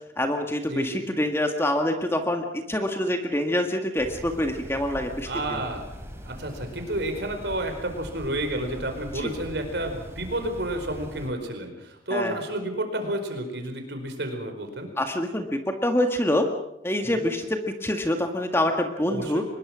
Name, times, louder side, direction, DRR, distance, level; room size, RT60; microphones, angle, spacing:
voice 1, 0.2-5.6 9.1-9.3 12.1-12.4 15.0-16.5 16.8-19.4, left 1 dB, 15° left, 5 dB, 1.8 m, -26 dB
sound 1, 4.0-11.3, equal, 15° right, 3.5 m, -41 dB
voice 2, 5.2-5.9 6.2-14.9 17.0-17.2 19.1-19.4, right 1 dB, 65° right, 5 dB, 4.7 m, -31 dB
24.0 x 21.0 x 6.3 m, 0.82 s
head